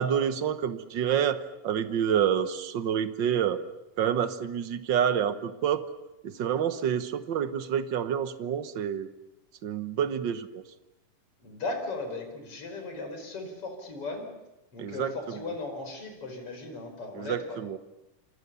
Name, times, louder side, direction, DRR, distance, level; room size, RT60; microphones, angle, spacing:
voice 1, 0.0-3.6 4.0-5.8 6.2-9.1 9.6-10.6 14.8-15.4 17.1-17.8, right 8 dB, 60° right, 11 dB, 1.2 m, -28 dB
voice 2, 11.4-14.2 14.7-17.6, left 3 dB, 45° left, 5 dB, 5.8 m, -37 dB
27.5 x 27.5 x 7.0 m, 0.94 s
omnidirectional pair, 3.7 m